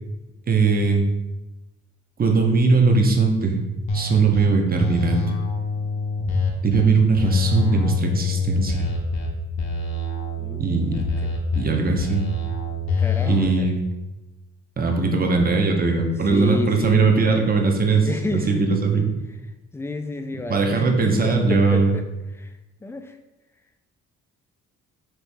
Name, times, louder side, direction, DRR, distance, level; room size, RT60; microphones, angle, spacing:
voice 1, 0.5-1.1 2.2-3.6 3.9-5.2 6.6-8.8 10.6-10.9 11.6-12.2 13.3-13.8 14.8-19.0 20.5-22.0, right 4 dB, 30° right, 2 dB, 0.8 m, -20 dB
sound 1, 3.9-4.4 4.8-6.8 7.2-9.3 9.6-11.6 12.0-13.4, left 4 dB, 65° left, 1.0 m, -25 dB
voice 2, 10.4-11.4 13.0-13.7 16.3-17.3 18.0-19.1 19.7-22.1 22.3-22.5 22.8-23.2, left 2 dB, 10° left, 6 dB, 0.4 m, -30 dB
4.5 x 3.1 x 3.4 m, 1.0 s
cardioid pair, 90°, 30 cm